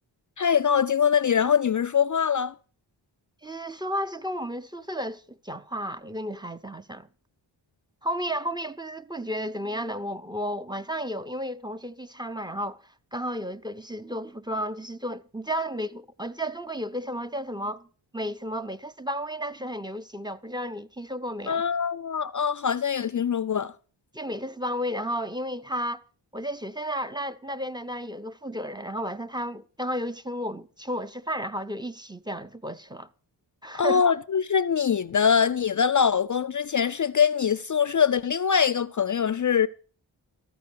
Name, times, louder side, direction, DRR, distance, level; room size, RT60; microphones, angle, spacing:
voice 1, 0.4-2.5 21.5-23.7 33.7-39.7, left 7 dB, 45° left, 0.5 m, -23 dB
voice 2, 3.4-7.1 8.0-17.9 18.1-21.6 24.1-26.0 26.3-33.1 33.6-34.0, equal, 10° right, 0.7 m, -33 dB
14.0 x 5.3 x 8.3 m
cardioid pair, 60°, 45 cm